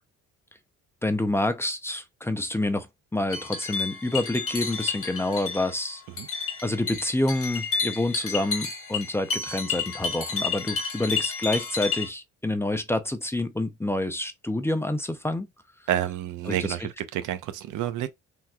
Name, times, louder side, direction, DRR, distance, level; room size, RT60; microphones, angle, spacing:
voice 1, 1.0-2.9 3.1-6.0 6.6-15.5 16.5-16.8, left 1 dB, 10° left, 0.5 m, -28 dB
sound 1, 3.3-12.1, left 5 dB, 50° left, 1.2 m, -31 dB
voice 2, 15.9-18.1, right 12 dB, 80° right, 0.6 m, -29 dB
3.5 x 2.9 x 2.3 m
cardioid pair, 90°, 30 cm